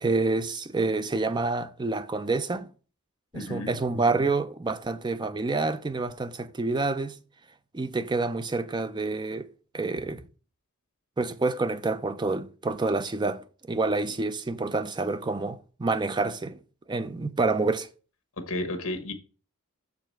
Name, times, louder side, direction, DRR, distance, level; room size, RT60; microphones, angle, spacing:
voice 1, 0.0-2.7 3.3-7.2 7.7-9.5 9.7-10.2 11.2-16.6 16.9-17.9, right 3 dB, 20° right, 0.4 m, -28 dB
voice 2, 3.3-3.8 18.4-19.1, left 1 dB, 70° left, 1.2 m, -32 dB
6.5 x 4.8 x 4.5 m
head